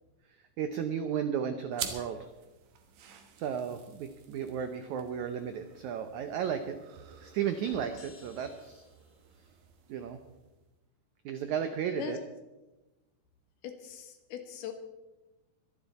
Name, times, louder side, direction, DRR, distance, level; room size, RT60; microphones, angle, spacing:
voice 1, 0.6-2.2 3.4-6.8 7.2-8.8 9.9-10.2 11.2-12.2, right 8 dB, 85° right, 8 dB, 1.6 m, -34 dB
sound 1, 1.7-10.7, right 8 dB, 65° right, 2.4 m, -47 dB
sound 2, 7.7-9.4, left 3 dB, 60° left, 1.2 m, -54 dB
voice 2, 13.6-14.7, left 8 dB, 80° left, 6 dB, 3.4 m, -40 dB
23.5 x 10.5 x 4.2 m, 1.1 s
omnidirectional pair, 4.5 m